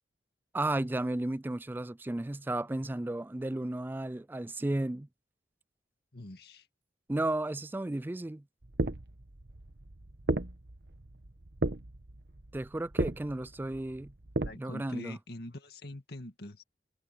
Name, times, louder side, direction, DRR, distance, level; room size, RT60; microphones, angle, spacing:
voice 1, 0.5-5.1 7.1-8.4 12.5-14.1 14.5-15.2, right 1 dB, 10° right, 0.3 m, -33 dB
voice 2, 6.1-6.7 14.4-16.6, left 1 dB, 60° left, 2.2 m, -44 dB
sound 1, 8.6-14.5, right 2 dB, 65° right, 1.3 m, -35 dB
head